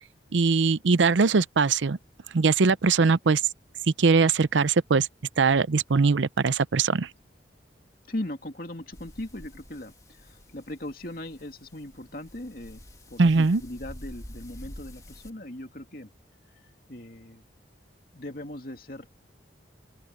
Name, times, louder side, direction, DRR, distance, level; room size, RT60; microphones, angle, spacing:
voice 1, 0.3-2.0 2.3-3.4 4.0-5.1 5.4-7.1 13.2-13.6, right 4 dB, 90° right, 0.6 m, -21 dB
voice 2, 8.1-9.9 10.2-12.8 13.1-16.1 16.9-17.4 18.1-19.1, left 1 dB, 50° left, 2.6 m, -38 dB
sound 1, 8.9-15.3, equal, 20° left, 2.5 m, -47 dB
open air
head